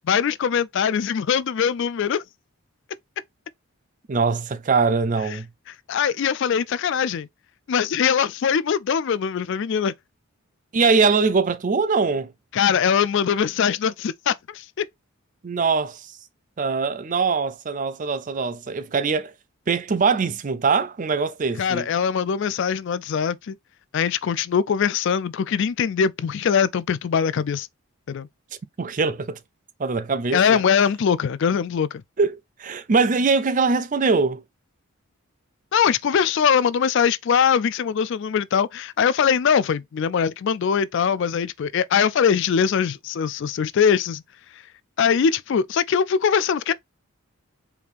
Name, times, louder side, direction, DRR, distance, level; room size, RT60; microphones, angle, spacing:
voice 1, 0.1-2.2 5.9-7.3 7.7-9.9 12.5-14.9 21.6-23.6 23.9-27.7 28.1-28.3 30.3-31.9 35.7-44.2 45.0-46.7, left 7 dB, 55° left, 0.3 m, -22 dB
voice 2, 4.1-5.5 10.7-12.3 15.4-16.1 16.6-19.3 19.7-21.9 28.8-29.4 29.8-30.6 32.2-32.3 32.6-34.4, right 4 dB, 35° right, 0.4 m, -22 dB
4.7 x 3.4 x 2.5 m
head